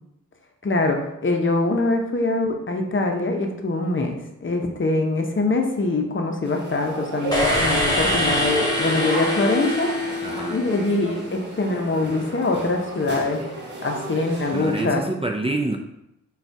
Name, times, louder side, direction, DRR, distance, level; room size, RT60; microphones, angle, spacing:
voice 1, 0.6-9.9 10.5-13.4 13.8-15.0, left 2 dB, 40° left, 3 dB, 0.7 m, -23 dB
sound 1, 6.4-14.8, right 1 dB, 35° right, 1.4 m, -33 dB
sound 2, 7.3-11.1, left 1 dB, 10° left, 1.5 m, -24 dB
voice 2, 10.2-10.6 14.5-15.8, right 2 dB, 20° right, 3 dB, 0.5 m, -26 dB
3.9 x 2.4 x 4.5 m, 0.84 s
cardioid pair, 45°, 32 cm